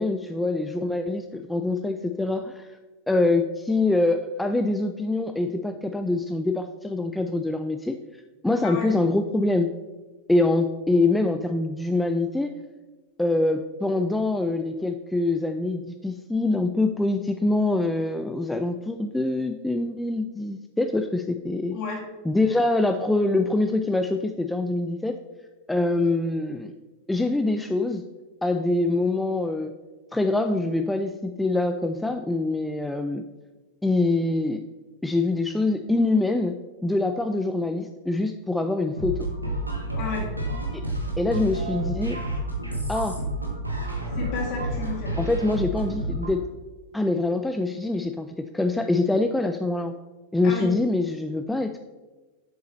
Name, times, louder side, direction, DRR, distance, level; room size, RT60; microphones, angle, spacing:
voice 1, 0.0-2.8 3.1-8.0 8.4-9.7 10.3-12.6 13.2-21.8 22.3-25.2 25.7-26.7 27.1-28.0 28.4-29.7 30.1-33.2 33.8-34.6 35.0-39.3 40.7-40.8 41.2-42.2 42.9-43.2 45.2-46.4 46.9-49.9 50.3-51.8, left 2 dB, 5° left, 6 dB, 0.4 m, -24 dB
voice 2, 8.6-8.9 21.7-22.0 40.0-40.3 44.2-45.2 50.4-50.7, left 5 dB, 45° left, -1 dB, 2.4 m, -32 dB
sound 1, 39.0-46.4, right 1 dB, 85° right, 1.2 m, -30 dB
7.9 x 7.1 x 3.1 m, 1.2 s
figure-of-eight pair, 90°, 0 cm